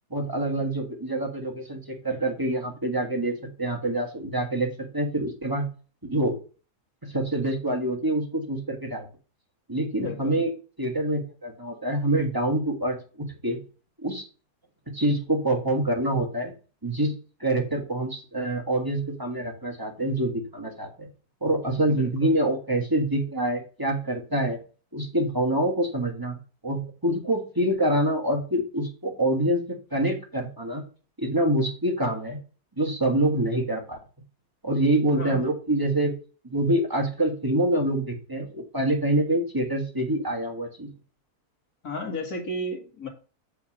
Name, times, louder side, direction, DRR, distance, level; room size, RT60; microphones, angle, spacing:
voice 1, 0.1-4.7 4.9-5.7 6.0-6.3 7.0-9.0 9.7-10.5 10.8-13.6 14.0-14.2 14.9-16.5 16.8-17.1 17.4-21.1 21.4-24.6 24.9-26.4 26.6-30.8 31.2-32.4 32.8-34.0 34.6-36.1 36.4-40.9, right 1 dB, 15° right, 0 dB, 1.5 m, -26 dB
voice 2, 10.0-10.4 21.9-22.4 35.1-35.5 41.8-43.1, left 1 dB, 75° left, 1 dB, 2.5 m, -34 dB
7.1 x 5.0 x 6.1 m, 0.36 s
omnidirectional pair, 1.6 m